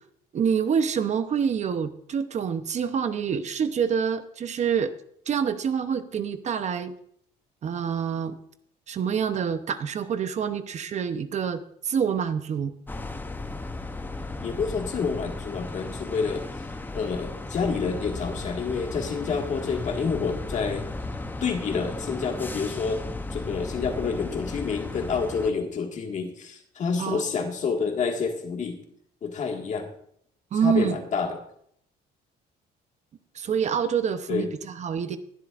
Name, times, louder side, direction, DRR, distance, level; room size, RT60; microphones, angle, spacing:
voice 1, 0.3-4.9 5.3-6.9 7.6-8.4 8.9-12.7 27.0-27.2 30.5-31.0 33.3-35.2, right 7 dB, 45° right, 11 dB, 0.7 m, -26 dB
sound 1, 12.9-25.5, left 2 dB, 10° left, 0.7 m, -35 dB
voice 2, 14.4-16.5 16.9-20.9 21.4-23.0 23.3-28.8 29.2-29.9 30.6-31.4 34.3-34.5, left 5 dB, 45° left, 3 dB, 1.8 m, -28 dB
21.0 x 7.5 x 2.4 m, 0.67 s
cardioid pair, 110°, 17 cm